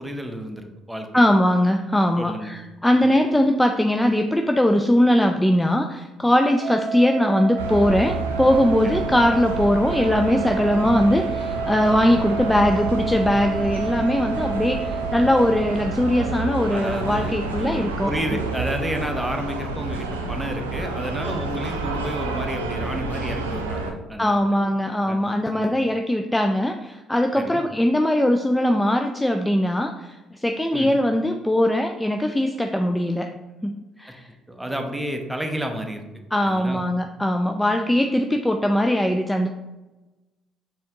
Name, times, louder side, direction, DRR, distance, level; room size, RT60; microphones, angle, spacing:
voice 1, 0.0-1.2 2.2-2.6 3.0-3.1 9.0-9.1 16.7-24.4 24.9-25.2 25.5-25.7 27.4-27.6 30.7-30.9 34.1-34.2 34.5-36.0 36.4-36.8, equal, 10° right, 4 dB, 0.7 m, -31 dB
voice 2, 1.1-18.1 24.2-33.4 33.6-34.3 36.3-39.5, left 1 dB, 10° left, 5 dB, 0.3 m, -21 dB
Wind instrument woodwind instrument, 6.6-15.9, right 6 dB, 65° right, 0.8 m, -31 dB
sound 1, 7.6-23.9, right 3 dB, 90° right, 0.4 m, -29 dB
4.3 x 3.5 x 2.8 m, 1.1 s
hypercardioid pair, 50°, 0 cm